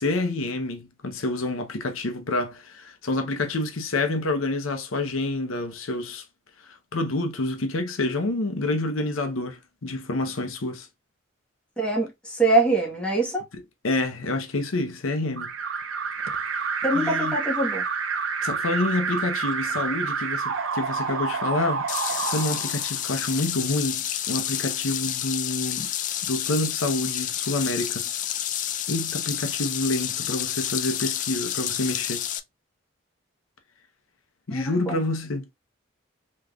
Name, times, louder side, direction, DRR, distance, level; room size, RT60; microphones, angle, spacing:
voice 1, 0.0-6.2 6.6-10.9 13.5-15.5 16.6-17.3 18.4-21.9 22.2-25.9 26.2-28.1 28.9-32.3 34.5-35.5, left 2 dB, 85° left, 0.8 m, -28 dB
voice 2, 11.8-13.4 16.8-17.8 34.5-35.0, right 2 dB, 5° left, 1.3 m, -24 dB
Alarm, 15.4-23.3, right 5 dB, 75° right, 0.6 m, -28 dB
sound 1, 21.9-32.4, left 11 dB, 40° left, 0.3 m, -29 dB
3.5 x 3.1 x 2.3 m
head